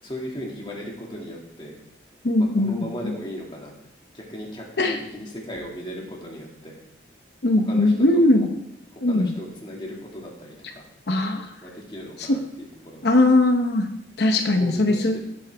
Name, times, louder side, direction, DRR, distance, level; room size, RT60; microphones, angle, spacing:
voice 1, 0.0-1.8 2.4-3.7 4.1-6.8 7.7-8.2 8.9-10.8 11.6-13.1 14.4-15.2, equal, 25° left, -2 dB, 2.2 m, -37 dB
voice 2, 2.2-3.1 4.8-5.0 7.4-8.5 9.0-9.3 11.1-11.5 12.3-12.4 13.0-13.9 14.2-15.2, left 2 dB, 65° left, 5 dB, 0.9 m, -20 dB
15.0 x 7.9 x 3.5 m, 0.84 s
head